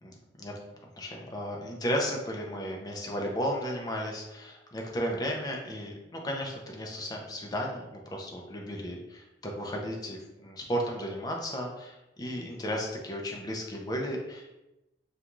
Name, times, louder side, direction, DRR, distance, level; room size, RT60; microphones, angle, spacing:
voice 1, 0.0-0.5 1.0-14.6, equal, 20° left, 0 dB, 0.4 m, -34 dB
2.4 x 2.2 x 2.9 m, 0.95 s
head